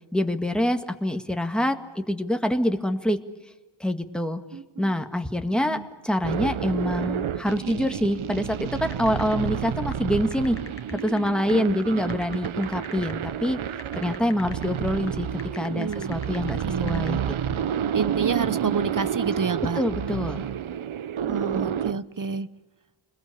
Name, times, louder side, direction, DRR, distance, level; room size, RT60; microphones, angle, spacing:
voice 1, 0.1-3.2 3.8-4.4 4.8-10.6 10.9-13.6 14.0-17.2 17.5-17.7 19.8-20.5, left 1 dB, ahead, 6 dB, 1.8 m, -26 dB
voice 2, 4.5-4.9 5.5-5.9 11.5-11.8 15.7-16.2 16.6-17.1 17.9-19.8 21.2-22.5, right 5 dB, 40° right, 16 dB, 1.0 m, -29 dB
sound 1, 6.2-21.9, right 9 dB, 80° right, 0.8 m, -30 dB
sound 2, 8.9-17.1, left 3 dB, 30° left, 1.9 m, -44 dB
28.5 x 21.0 x 8.6 m, 1.1 s
wide cardioid pair, 70°, 48 cm